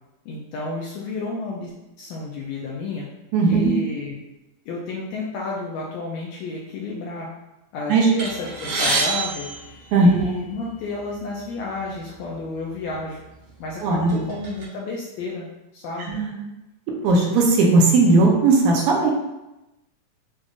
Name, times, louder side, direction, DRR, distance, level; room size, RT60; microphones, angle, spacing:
voice 1, 0.2-1.7 2.0-3.1 3.4-4.2 4.7-7.3 7.7-9.5 10.0-13.2 13.6-15.5 15.7-16.2, left 3 dB, 80° left, -3 dB, 1.6 m, -31 dB
voice 2, 3.3-3.7 7.9-8.1 9.9-10.3 13.8-14.2 16.1-16.4 17.0-19.1, right 3 dB, 75° right, -1 dB, 2.0 m, -17 dB
sound 1, 8.2-10.5 11.4-11.5 11.8-12.0 12.8-13.0 13.5-14.6, right 3 dB, 55° right, 1.6 m, -27 dB
7.0 x 2.5 x 2.5 m, 0.96 s
omnidirectional pair, 3.6 m